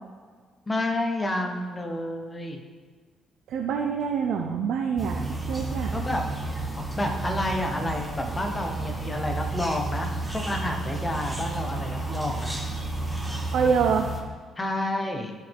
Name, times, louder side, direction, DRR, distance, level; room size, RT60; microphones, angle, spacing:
voice 1, 0.7-2.6 5.9-6.2 6.8-12.6 14.6-15.3, left 1 dB, 15° left, 3 dB, 1.0 m, -29 dB
voice 2, 3.5-5.2 5.5-5.9 13.5-14.1, right 6 dB, 75° right, 3 dB, 0.6 m, -25 dB
sound 1, 5.0-14.2, right 2 dB, 5° right, 1.1 m, -32 dB
14.0 x 5.2 x 3.6 m, 1.6 s
cardioid pair, 140°, 0 cm